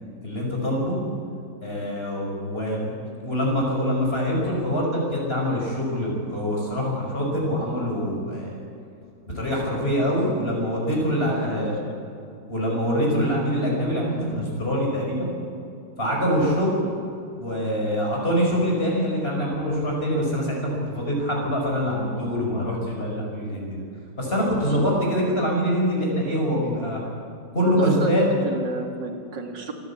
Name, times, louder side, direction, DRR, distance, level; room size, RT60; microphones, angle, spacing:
voice 1, 0.2-1.0 1.6-3.0 3.2-8.6 9.3-11.8 12.5-15.3 16.0-16.8 17.4-23.8 24.2-27.0 27.5-28.3, equal, 30° left, -2 dB, 5.6 m, -24 dB
voice 2, 11.3-11.7 16.4-16.6 24.3-24.6 24.8-25.2 27.6-28.1 28.4-29.7, right 4 dB, 60° right, 3 dB, 2.7 m, -31 dB
26.5 x 11.5 x 8.5 m, 2.6 s
omnidirectional pair, 2.2 m